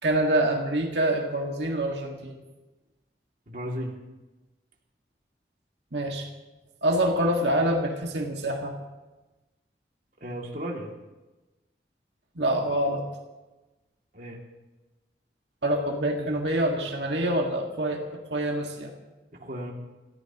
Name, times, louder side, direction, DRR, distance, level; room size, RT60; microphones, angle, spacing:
voice 1, 0.0-2.4 5.9-6.3 6.8-8.7 12.4-13.0 15.6-18.0 18.3-18.9, right 1 dB, 85° right, 0 dB, 1.9 m, -26 dB
voice 2, 3.5-3.9 10.2-10.9 14.1-14.4 19.4-19.7, equal, 50° right, -1 dB, 2.5 m, -34 dB
28.0 x 15.0 x 3.0 m, 1.1 s
head